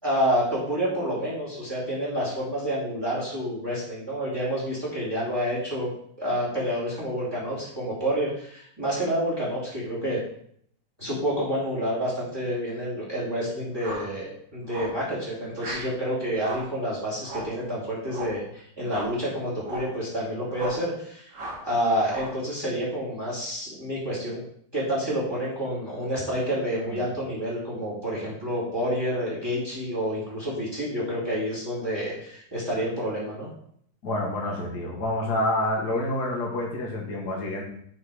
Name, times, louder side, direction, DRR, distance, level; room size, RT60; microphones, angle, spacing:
voice 1, 0.0-5.9 6.2-10.2 11.0-21.3 21.6-24.4 24.7-33.5, equal, 15° right, -6 dB, 2.4 m, -28 dB
sound 1, 13.8-14.1 14.7-15.0 15.6-15.9 16.4-16.7 17.2-17.6 18.1-18.4 18.8-19.2 19.6-20.0 20.5-20.9 21.3-21.7 22.0-22.4, right 1 dB, 85° right, 2.1 m, -37 dB
voice 2, 34.0-37.6, left 1 dB, 65° left, -1 dB, 2.0 m, -28 dB
6.3 x 4.1 x 4.8 m, 0.66 s
omnidirectional pair, 1.8 m